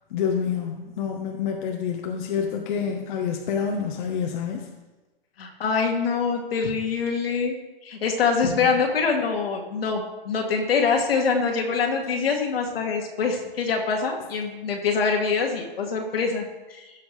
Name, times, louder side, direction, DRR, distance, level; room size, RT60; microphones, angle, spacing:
voice 1, 0.1-4.7 8.4-8.7, left 7 dB, 55° left, 1 dB, 1.2 m, -28 dB
voice 2, 5.4-7.5 7.8-16.4 16.7-16.9, left 5 dB, 80° left, 1 dB, 2.1 m, -24 dB
15.5 x 5.9 x 3.3 m, 1.1 s
hypercardioid pair, 145°, 29 cm